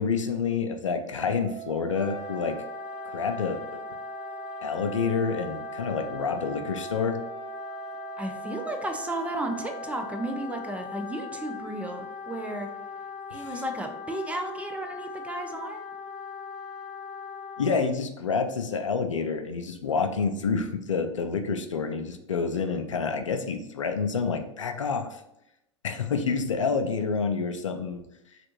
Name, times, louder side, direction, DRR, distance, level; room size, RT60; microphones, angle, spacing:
voice 1, 0.0-2.6 3.1-3.8 4.6-7.2 13.3-13.5 17.6-25.2 25.8-28.0, left 5 dB, 85° left, 6 dB, 0.4 m, -28 dB
Wind instrument woodwind instrument, 1.1-10.5, right 20 dB, 55° right, 0.6 m, -43 dB
Wind instrument woodwind instrument 2, 1.9-17.8, left 6 dB, 30° left, 1.0 m, -40 dB
voice 2, 8.2-12.7 13.3-15.9, right 2 dB, 10° right, 4 dB, 0.4 m, -34 dB
3.3 x 2.5 x 2.9 m, 0.84 s
hypercardioid pair, 90°, 16 cm